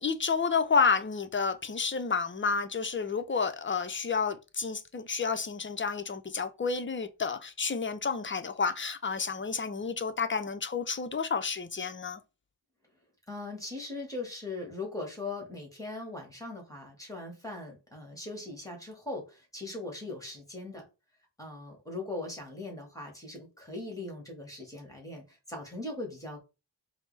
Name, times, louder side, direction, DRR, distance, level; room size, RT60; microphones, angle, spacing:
voice 1, 0.0-12.2, left 5 dB, 25° left, 0.5 m, -30 dB
voice 2, 13.3-20.8 21.4-26.4, left 2 dB, 5° left, 1.5 m, -40 dB
4.5 x 2.1 x 3.2 m
wide cardioid pair, 40°, 46 cm